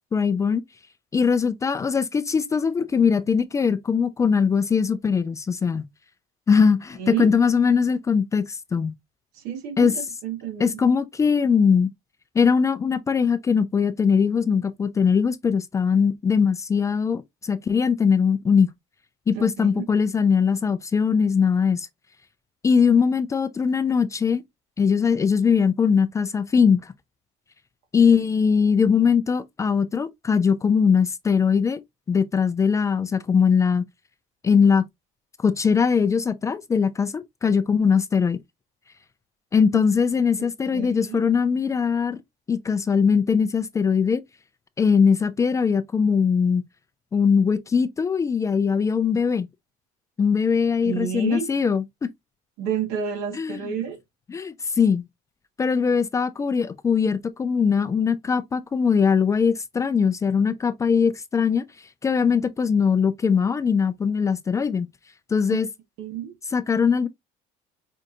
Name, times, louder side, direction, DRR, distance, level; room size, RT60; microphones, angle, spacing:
voice 1, 0.1-0.6 1.1-5.8 6.5-8.9 9.8-9.9 10.6-11.9 12.4-18.7 19.3-21.9 22.6-24.4 24.8-26.9 27.9-31.8 32.1-33.9 34.4-34.9 35.4-38.4 39.5-42.2 42.5-44.2 44.8-46.7 47.1-49.5 50.2-51.8 53.3-53.6 54.3-55.1 55.6-61.7 62.0-64.9 65.3-65.7 66.5-67.1, left 6 dB, 20° left, 0.3 m, -21 dB
voice 2, 7.0-7.3 9.3-10.8 19.3-19.8 40.4-41.2 50.8-51.5 52.6-54.0 65.5-65.6 66.0-66.3, right 7 dB, 80° right, 1.4 m, -30 dB
5.2 x 2.5 x 2.6 m
cardioid pair, 125°, 16 cm